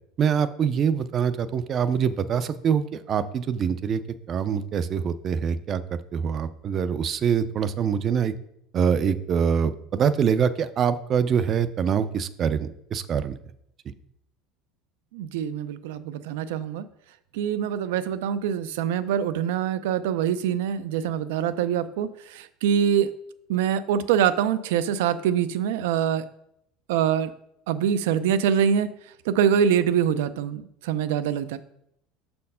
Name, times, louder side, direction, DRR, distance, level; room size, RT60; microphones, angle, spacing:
voice 1, 0.2-4.0 4.3-5.8 6.1-8.3 8.7-13.4, right 7 dB, 30° right, 14 dB, 0.4 m, -24 dB
voice 2, 15.1-16.9 17.3-23.1 23.5-26.2 26.9-27.3 27.7-28.9 29.2-31.6, right 8 dB, 90° right, 13 dB, 0.5 m, -24 dB
6.3 x 4.3 x 5.5 m, 0.76 s
cardioid pair, 160°, 0 cm